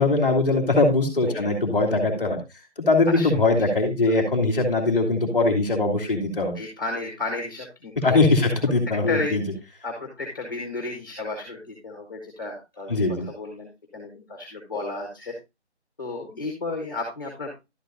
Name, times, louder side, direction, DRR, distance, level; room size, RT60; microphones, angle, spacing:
voice 1, 0.0-2.4 2.9-6.5 8.0-9.4 12.9-13.3, left 3 dB, 5° left, -13 dB, 1.9 m, -21 dB
voice 2, 3.1-3.7 6.5-8.5 9.1-9.3 9.8-15.3 16.0-17.5, left 3 dB, 20° left, 1 dB, 1.5 m, -33 dB
12.0 x 8.4 x 2.6 m, 0.24 s
figure-of-eight pair, 175°, 34 cm